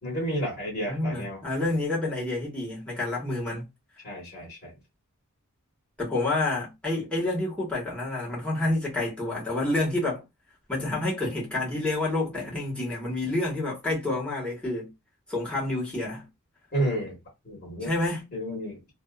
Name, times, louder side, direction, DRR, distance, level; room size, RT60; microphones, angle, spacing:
voice 1, 0.0-1.4 4.0-4.7 16.7-17.2 17.4-17.9 18.3-18.9, right 1 dB, 50° left, 1.4 m, -31 dB
voice 2, 0.9-3.7 6.0-10.2 10.7-14.9 15.3-16.2 17.8-18.3, left 2 dB, 5° left, 1.3 m, -28 dB
2.6 x 2.4 x 2.4 m
head